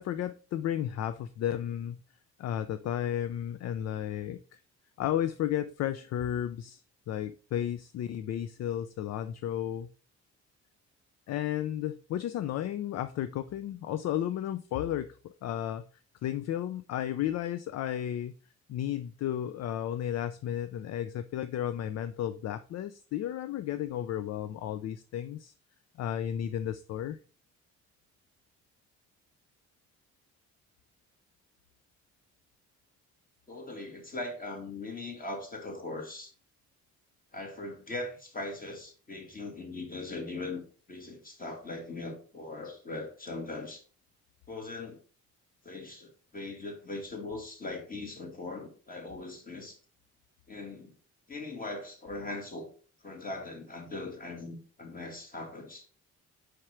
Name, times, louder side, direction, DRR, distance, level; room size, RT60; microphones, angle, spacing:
voice 1, 0.0-2.0 2.4-4.6 5.0-6.8 7.1-9.9 11.3-15.8 16.2-18.3 18.7-25.5 26.0-27.2, left 11 dB, 60° left, 0.4 m, -33 dB
voice 2, 33.5-36.3 37.3-40.6 40.9-43.8 44.5-45.0 45.6-49.8 50.5-50.9 51.3-52.7 53.0-55.9, left 2 dB, 30° left, 2.1 m, -40 dB
5.0 x 4.5 x 4.3 m
cardioid pair, 90°, 30 cm